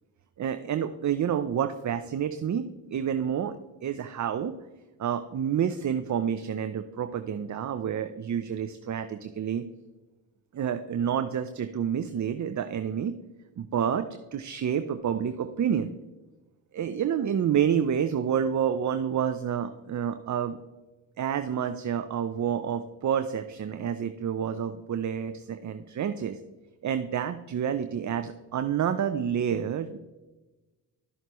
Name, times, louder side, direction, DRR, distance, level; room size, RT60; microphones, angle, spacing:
voice 1, 0.4-4.5 5.0-9.6 10.5-13.2 13.6-15.9 16.7-20.6 21.2-26.4 26.8-30.0, right 8 dB, 40° right, 9 dB, 0.6 m, -29 dB
12.5 x 6.6 x 3.1 m, 1.1 s
supercardioid pair, 55°, 48 cm